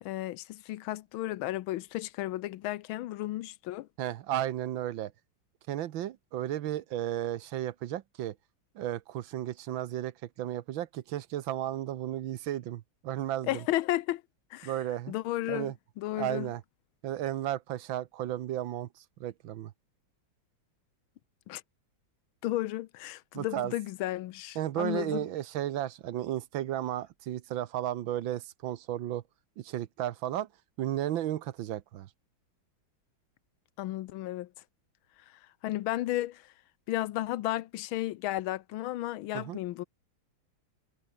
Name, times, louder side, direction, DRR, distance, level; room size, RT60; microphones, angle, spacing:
voice 1, 0.0-3.9 13.4-14.2 14.5-14.7 15.1-16.5 21.5-21.6 22.4-25.3 33.8-34.5 35.6-36.4 36.9-39.8, left 15 dB, 80° left, 1.5 m, -33 dB
voice 2, 4.0-5.1 5.7-8.3 8.7-13.6 14.6-15.1 15.5-15.7 16.2-16.6 17.0-18.9 19.2-19.7 23.3-23.7 24.5-29.2 29.6-30.5 30.8-32.1 39.3-39.6, right 12 dB, 75° right, 1.6 m, -34 dB
omnidirectional pair, 2.2 m